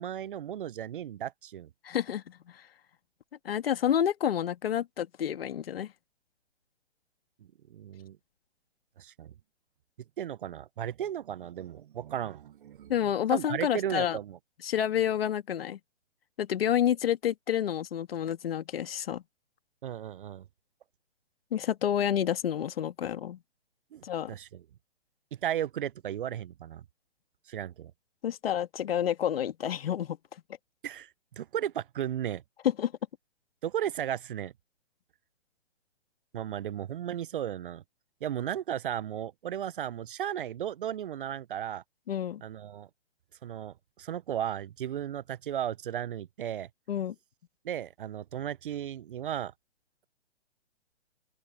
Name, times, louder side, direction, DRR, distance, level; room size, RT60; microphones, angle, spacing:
voice 1, 0.0-1.7 7.7-8.2 9.0-9.3 10.2-12.9 13.3-14.4 19.8-20.5 23.9-24.0 24.3-24.6 25.3-26.8 27.5-27.9 30.8-32.4 33.6-34.5 36.3-37.8 38.2-41.8 42.4-42.9 43.4-46.7 47.6-49.5, right 10 dB, 45° right, 0.8 m, -35 dB
voice 2, 1.8-2.4 3.4-5.9 12.9-14.2 14.6-15.8 16.4-19.2 21.5-23.4 24.0-24.3 28.2-30.2 32.8-32.9 42.1-42.4 46.9-47.1, left 10 dB, 55° left, 2.3 m, -29 dB
open air
figure-of-eight pair, 135°, 36 cm